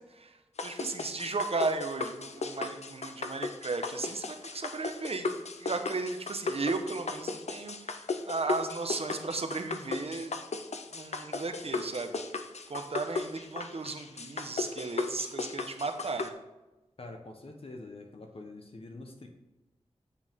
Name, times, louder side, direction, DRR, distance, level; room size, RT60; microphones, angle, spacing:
voice 1, 0.1-10.4 10.9-16.4, right 3 dB, 60° right, 6 dB, 1.0 m, -35 dB
sound 1, 0.6-16.3, left 4 dB, 70° left, 0.7 m, -36 dB
voice 2, 17.0-19.3, left 2 dB, 55° left, 3 dB, 1.1 m, -45 dB
8.5 x 7.4 x 3.7 m, 1.0 s
wide cardioid pair, 55°, 12 cm